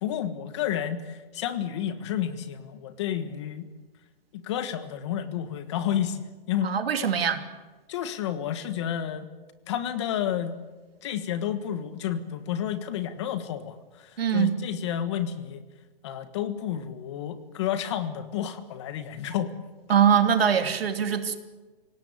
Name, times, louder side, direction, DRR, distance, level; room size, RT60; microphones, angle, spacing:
voice 1, 0.0-3.7 4.3-6.7 7.9-9.3 9.7-10.6 11.0-15.6 16.0-19.5 19.9-20.0, left 10 dB, 30° left, 11 dB, 1.4 m, -31 dB
voice 2, 6.6-7.4 14.2-14.5 19.9-21.4, right 8 dB, 85° right, 7 dB, 3.0 m, -22 dB
27.0 x 18.0 x 8.1 m, 1.2 s
hypercardioid pair, 170°, 29 cm